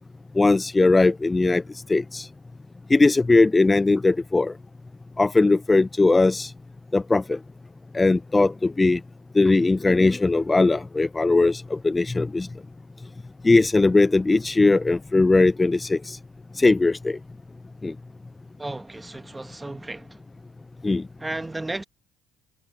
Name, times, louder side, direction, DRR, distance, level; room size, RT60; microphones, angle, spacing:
voice 1, 0.4-1.6 1.9-2.3 2.9-4.5 5.2-6.5 6.9-7.4 7.9-9.0 9.3-12.5 13.4-16.2 16.6-17.2 17.8-17.9 20.8-21.0, left 3 dB, 20° left, 0.5 m, -19 dB
voice 2, 18.6-20.2 21.2-21.8, right 2 dB, 15° right, 1.4 m, -34 dB
supercardioid pair, 80°, 0 cm